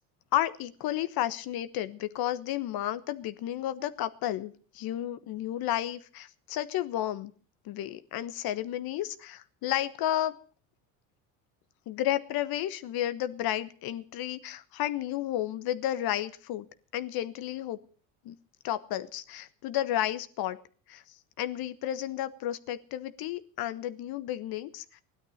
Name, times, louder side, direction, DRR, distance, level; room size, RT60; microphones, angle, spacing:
voice 1, 0.3-7.3 7.6-10.4 11.9-16.6 16.9-17.8 18.2-18.3 18.6-20.6 20.9-21.0 21.4-25.0, left 13 dB, 55° left, 12 dB, 1.3 m, -32 dB
17.0 x 12.5 x 6.6 m, 0.43 s
hypercardioid pair, 85°, 44 cm